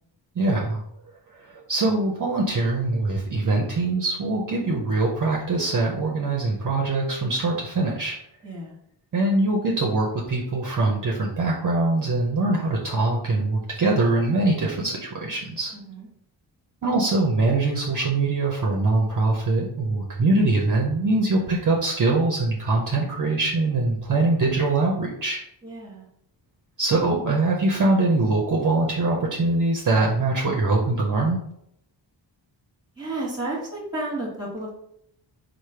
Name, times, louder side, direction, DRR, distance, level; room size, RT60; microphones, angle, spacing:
voice 1, 0.4-0.8 1.4-8.2 9.1-15.7 16.8-25.4 26.8-31.4, right 2 dB, 45° right, -1 dB, 0.6 m, -23 dB
voice 2, 8.4-8.8 15.7-16.1 25.6-26.1 33.0-34.7, right 2 dB, 10° right, -3 dB, 1.3 m, -32 dB
4.8 x 2.1 x 4.3 m, 0.73 s
wide cardioid pair, 170°, 46 cm